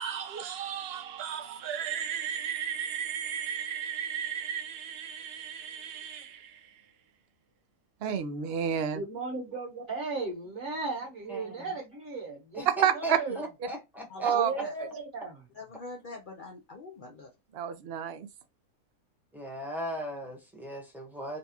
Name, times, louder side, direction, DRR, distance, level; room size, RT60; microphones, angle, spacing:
voice 1, 0.0-6.8 8.0-9.0 12.7-13.2 14.2-14.5 17.5-18.3, right 8 dB, 75° right, 0.5 m, -32 dB
voice 2, 8.9-12.7 12.9-13.4 14.3-15.4, right 4 dB, 50° right, 1.5 m, -35 dB
voice 3, 11.3-11.7 12.5-14.6 19.3-21.4, right 1 dB, ahead, 0.8 m, -38 dB
voice 4, 14.1-14.7 15.5-17.3, left 3 dB, 80° left, 0.4 m, -43 dB
3.9 x 2.3 x 2.8 m
omnidirectional pair, 1.7 m